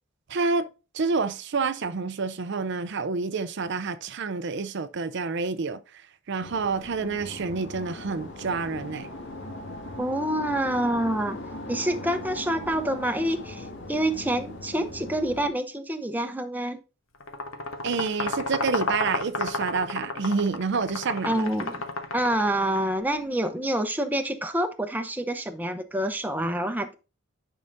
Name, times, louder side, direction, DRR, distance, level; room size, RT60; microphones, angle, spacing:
voice 1, 0.3-0.7 0.9-6.0 6.3-9.1 17.8-21.5, right 4 dB, 55° right, 0.5 m, -28 dB
sound 1, 6.4-15.5, left 1 dB, 60° left, 1.9 m, -39 dB
voice 2, 10.0-11.4 11.7-16.8 21.2-21.8 22.1-26.9, right 1 dB, 10° right, 0.7 m, -27 dB
sound 2, 17.2-22.9, left 2 dB, 80° left, 1.2 m, -32 dB
10.5 x 5.6 x 2.6 m
head